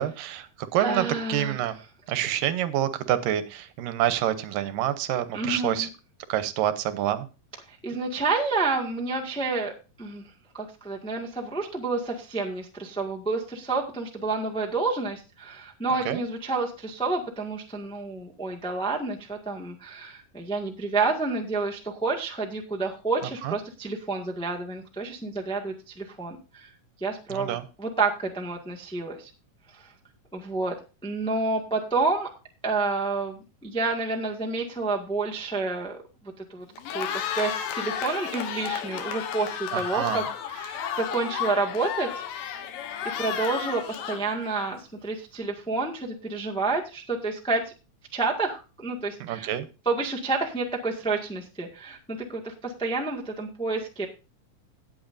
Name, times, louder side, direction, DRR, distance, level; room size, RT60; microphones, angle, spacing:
voice 1, 0.0-1.8 2.1-5.9 6.3-7.3 16.1-16.2 23.4-23.6 27.3-27.6 39.7-40.3 49.2-49.7, right 12 dB, 80° right, 12 dB, 2.5 m, -27 dB
voice 2, 0.8-1.6 5.3-5.9 7.7-10.2 10.5-26.7 27.0-29.3 29.7-29.9 30.3-30.8 31.0-32.3 32.6-36.6 36.9-42.2 43.2-47.6 48.1-49.5 49.8-54.1, right 3 dB, 5° left, 0 dB, 0.5 m, -29 dB
Cheering, 36.7-45.0, left 9 dB, 85° left, 2.9 m, -33 dB
18.0 x 7.8 x 2.6 m, 0.31 s
omnidirectional pair, 3.9 m